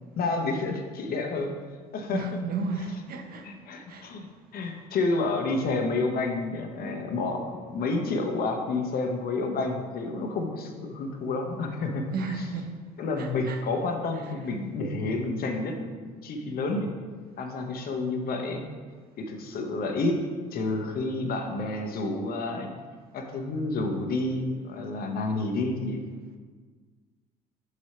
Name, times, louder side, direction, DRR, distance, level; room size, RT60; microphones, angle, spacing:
voice 1, 0.2-1.5 1.9-2.2 3.4-4.3 4.5-12.1 13.0-16.9 17.4-18.6 19.2-20.2 20.5-22.7 23.1-26.0, left 3 dB, 55° left, 1.0 m, -29 dB
voice 2, 2.1-3.5 3.9-4.1 4.6-4.8 12.1-12.8 13.2-13.6, right 3 dB, 55° right, 0.9 m, -33 dB
5.3 x 5.0 x 4.3 m
hypercardioid pair, 60°, 19 cm